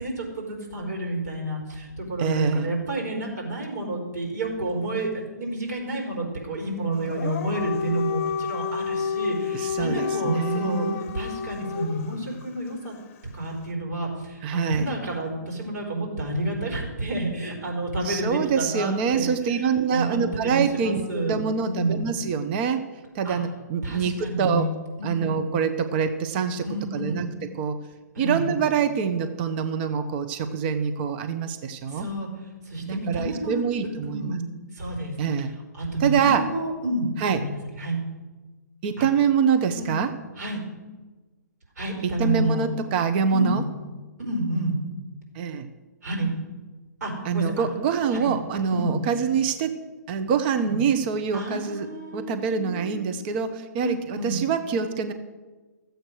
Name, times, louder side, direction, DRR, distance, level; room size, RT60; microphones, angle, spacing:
voice 1, 0.0-10.9 11.1-12.9 13.3-21.3 21.6-22.0 23.2-23.4 23.8-24.7 25.0-25.5 26.6-27.3 28.1-28.5 31.9-33.6 34.0-35.1 35.7-38.0 39.0-39.1 39.7-39.9 40.4-40.6 41.8-42.6 43.2-43.6 44.2-44.8 46.0-46.3 47.0-47.7 48.1-48.3 48.7-49.0 50.5-50.8 51.3-53.2 53.8-54.4, right 2 dB, 65° right, -1 dB, 4.5 m, -30 dB
voice 2, 2.2-2.7 9.5-11.0 14.4-14.9 18.0-22.9 23.1-24.7 25.0-26.7 26.9-27.3 27.6-27.8 28.2-32.1 32.8-34.4 35.2-35.5 36.0-36.5 37.2-37.4 38.8-40.1 42.0-43.6 45.3-45.7 47.2-49.8 50.1-55.1, right 6 dB, 35° right, 9 dB, 0.9 m, -25 dB
Dog, 7.0-12.2, left 6 dB, 45° left, 0.9 m, -30 dB
14.0 x 7.9 x 6.4 m, 1.3 s
figure-of-eight pair, 130°, 10 cm